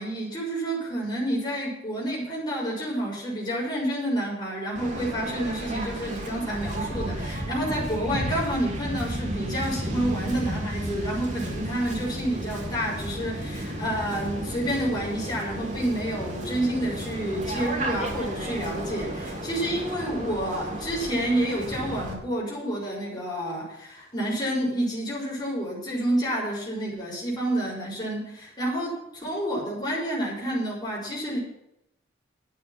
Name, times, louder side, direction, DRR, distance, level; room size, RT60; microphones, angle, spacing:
voice 1, 0.0-31.4, right 1 dB, 20° left, -5 dB, 6.7 m, -29 dB
Waves surf, 4.7-22.1, right 1 dB, 40° right, 3.1 m, -33 dB
11.5 x 9.3 x 7.5 m, 0.80 s
head